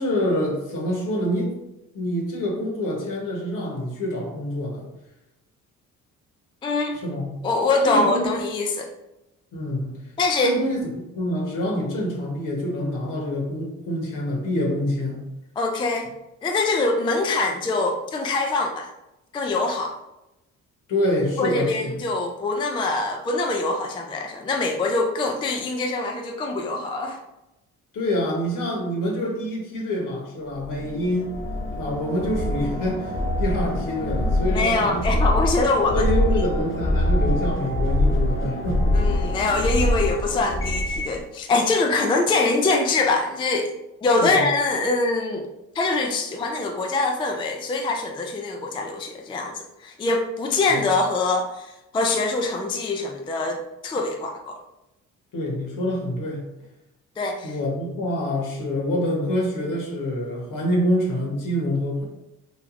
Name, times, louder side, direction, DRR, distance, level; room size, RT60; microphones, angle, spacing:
voice 1, 0.0-1.6 1.9-4.8 7.0-7.4 7.8-8.3 9.5-10.0 10.4-10.9 11.1-15.2 20.9-21.9 27.9-31.3 31.8-35.0 35.9-38.9 44.2-44.4 50.7-50.8 55.3-56.5 57.4-62.0, left 1 dB, 60° left, -1 dB, 1.1 m, -26 dB
voice 2, 6.6-7.0 7.4-8.9 10.2-10.6 15.6-16.1 16.4-18.9 19.3-20.0 21.3-27.2 34.5-36.1 38.9-43.7 44.0-45.5 45.7-54.6 57.2-57.6, left 3 dB, 15° left, 2 dB, 0.3 m, -24 dB
sound 1, 30.6-41.2, left 1 dB, 35° left, 0.9 m, -24 dB
3.2 x 2.4 x 2.5 m, 0.93 s
supercardioid pair, 60°, 35 cm